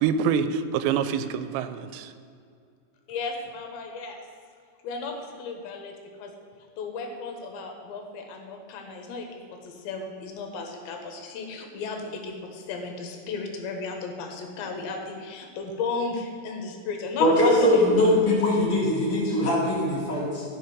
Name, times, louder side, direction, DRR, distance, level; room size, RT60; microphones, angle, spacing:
voice 1, 0.0-2.1, right 7 dB, 85° right, 11 dB, 2.9 m, -26 dB
voice 2, 3.1-4.2 4.8-6.3 6.8-17.3 17.6-17.8, left 4 dB, 80° left, 3 dB, 3.4 m, -35 dB
voice 3, 17.2-20.4, left 1 dB, 45° left, -5 dB, 2.9 m, -21 dB
13.5 x 5.2 x 6.1 m, 2.3 s
omnidirectional pair, 5.1 m